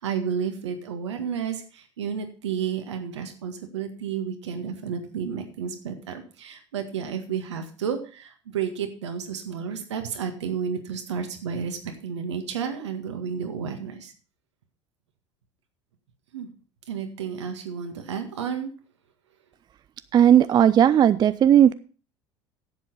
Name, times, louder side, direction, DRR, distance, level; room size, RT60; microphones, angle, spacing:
voice 1, 0.0-14.1 16.3-16.5 16.9-18.7, right 7 dB, 75° right, 6 dB, 1.8 m, -31 dB
voice 2, 20.1-21.7, right 10 dB, 30° right, 15 dB, 0.4 m, -16 dB
11.0 x 7.7 x 5.3 m, 0.39 s
figure-of-eight pair, 70°, 15 cm